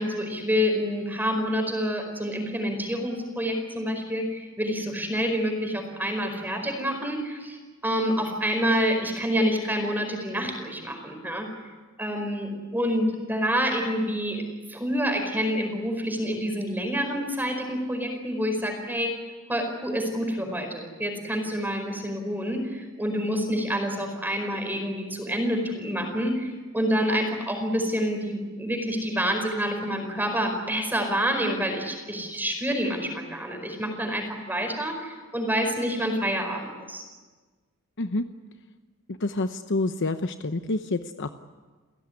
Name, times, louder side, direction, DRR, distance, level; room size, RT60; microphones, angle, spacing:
voice 1, 0.0-7.6 7.8-11.5 12.0-14.4 14.7-19.1 19.5-37.0, equal, 10° right, 4 dB, 4.8 m, -27 dB
voice 2, 39.2-41.3, left 2 dB, 55° left, 8 dB, 0.9 m, -28 dB
30.0 x 16.5 x 9.9 m, 1.4 s
head